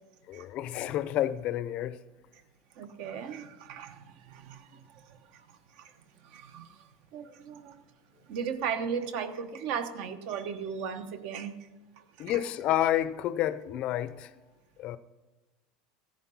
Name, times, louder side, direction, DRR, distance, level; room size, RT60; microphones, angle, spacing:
voice 1, 0.3-2.0 12.2-14.3 14.8-15.0, left 12 dB, 40° left, 0.6 m, -29 dB
voice 2, 2.8-5.9 6.2-7.8 8.3-11.6 12.0-12.4, right 7 dB, 55° right, 1.1 m, -37 dB
15.0 x 10.5 x 5.6 m
supercardioid pair, 160°, 3 cm